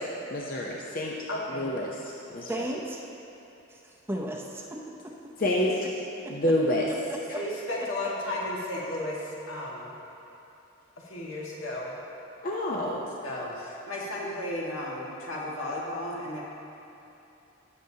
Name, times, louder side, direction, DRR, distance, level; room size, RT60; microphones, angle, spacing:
voice 1, 0.3-1.1 1.5-1.9 2.3-2.7 5.4-5.7 6.3-6.8 12.4-13.0, left 1 dB, 45° left, -3 dB, 0.6 m, -27 dB
voice 2, 1.3-1.7 5.6-5.7 7.3-10.0 11.0-11.9 13.2-16.4, left 1 dB, 80° left, -4 dB, 1.7 m, -34 dB
voice 3, 2.5-3.1 3.7-5.2 6.2-6.4 7.1-7.4, right 1 dB, 10° right, -1 dB, 0.6 m, -35 dB
16.5 x 6.8 x 2.8 m, 3.0 s
head